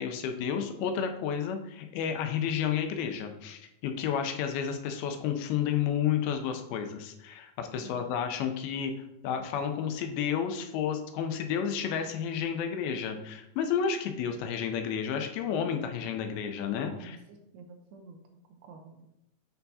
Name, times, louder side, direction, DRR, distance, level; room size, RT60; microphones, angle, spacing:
voice 1, 0.0-8.9 9.2-17.2, left 8 dB, 80° left, 6 dB, 2.5 m, -31 dB
voice 2, 16.9-19.1, right 3 dB, 80° right, 3 dB, 2.6 m, -50 dB
8.8 x 4.5 x 2.7 m, 0.86 s
omnidirectional pair, 4.4 m